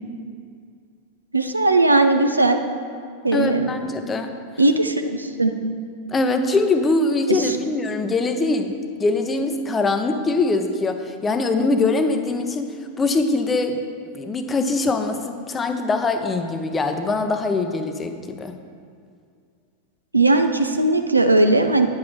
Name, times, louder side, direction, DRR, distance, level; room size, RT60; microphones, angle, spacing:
voice 1, 1.3-2.6 3.2-3.7 4.6-5.5 7.3-7.6 20.1-21.9, right 2 dB, 80° right, 7 dB, 0.6 m, -18 dB
voice 2, 3.3-4.3 6.1-8.7 9.0-13.8 14.1-18.6, left 3 dB, 15° left, 7 dB, 0.7 m, -22 dB
9.4 x 7.1 x 4.6 m, 2.2 s
figure-of-eight pair, 90°, 0 cm